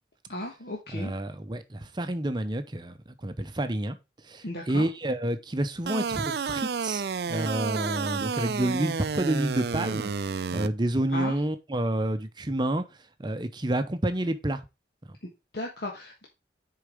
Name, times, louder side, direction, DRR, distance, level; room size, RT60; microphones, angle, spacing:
voice 1, 0.3-1.1 4.4-4.9 11.1-11.4 15.2-16.3, left 1 dB, 65° left, 1.3 m, -36 dB
voice 2, 0.9-2.9 3.2-4.0 4.2-12.8 13.2-14.6, right 1 dB, 25° right, 0.7 m, -29 dB
sound 1, 5.9-10.7, right 5 dB, 65° right, 0.4 m, -30 dB
6.6 x 4.7 x 5.1 m
head